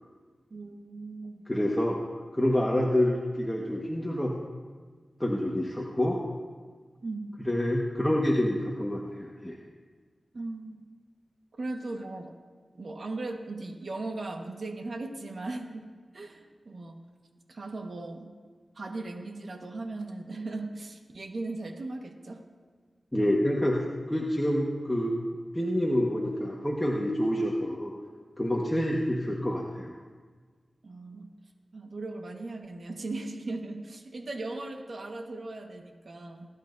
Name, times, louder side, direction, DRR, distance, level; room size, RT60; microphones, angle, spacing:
voice 1, 0.5-1.4 7.0-7.3 10.3-10.8 11.6-12.3 12.8-15.9 16.1-17.0 17.5-18.3 18.7-22.4 28.7-29.0 30.8-31.3 31.7-36.5, right 2 dB, 70° right, 3 dB, 1.5 m, -38 dB
voice 2, 1.5-2.0 2.3-4.3 5.2-6.2 7.5-9.6 23.1-23.8 24.1-25.2 25.5-27.9 28.4-29.9, left 1 dB, 15° left, -3 dB, 1.5 m, -27 dB
20.5 x 11.5 x 2.7 m, 1.5 s
cardioid pair, 40°, 0 cm